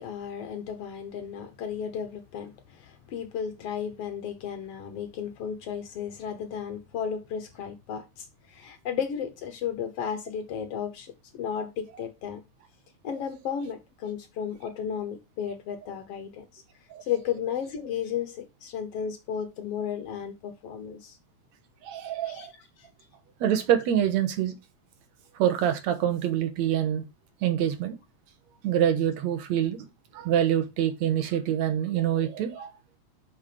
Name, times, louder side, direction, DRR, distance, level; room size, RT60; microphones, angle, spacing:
voice 1, 0.0-12.4 13.0-16.6 17.0-21.2 22.2-22.5, left 8 dB, 65° left, 1.7 m, -34 dB
voice 2, 21.8-22.5 23.4-24.6 25.4-27.0 27.4-28.0 28.6-29.8 30.1-32.7, right 10 dB, 70° right, 2.3 m, -25 dB
6.1 x 6.1 x 5.0 m
omnidirectional pair, 3.4 m